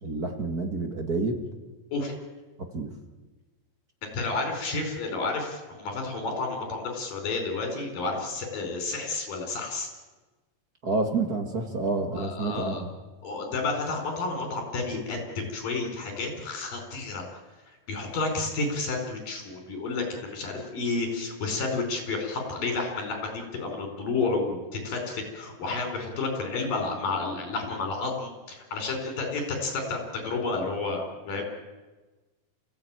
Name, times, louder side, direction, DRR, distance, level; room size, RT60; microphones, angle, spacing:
voice 1, 0.0-1.4 2.6-2.9 10.8-12.9 31.3-31.5, right 3 dB, 35° right, 4 dB, 1.8 m, -29 dB
voice 2, 4.1-9.9 12.2-12.8 13.2-17.2 17.9-31.5, left 3 dB, 80° left, 3 dB, 6.4 m, -31 dB
28.0 x 15.5 x 9.1 m, 1.2 s
omnidirectional pair, 3.9 m